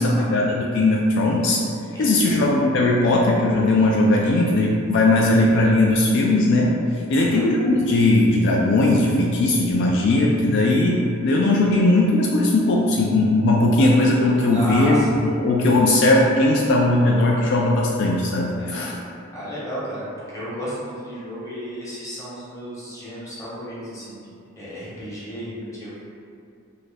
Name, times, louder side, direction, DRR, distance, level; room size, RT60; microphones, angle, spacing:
voice 1, 0.0-1.6 2.0-6.7 7.1-19.0, left 2 dB, 60° left, -2 dB, 0.3 m, -18 dB
voice 2, 1.9-2.4 7.1-7.4 14.5-15.2 18.6-18.9 19.3-24.3 24.6-26.0, equal, 15° left, -9 dB, 0.9 m, -33 dB
2.6 x 2.5 x 3.9 m, 2.5 s
head